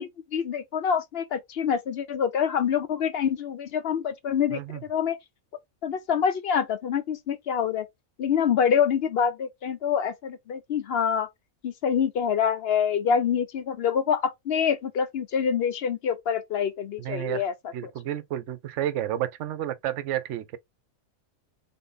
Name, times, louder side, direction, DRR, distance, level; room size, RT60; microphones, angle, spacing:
voice 1, 0.0-4.6 4.9-5.2 5.8-7.8 8.2-11.3 11.6-17.5, left 7 dB, 60° left, 0.7 m, -26 dB
voice 2, 4.5-4.8 17.0-17.4 17.7-20.6, right 12 dB, 65° right, 0.9 m, -31 dB
3.8 x 2.6 x 3.9 m
omnidirectional pair, 1.4 m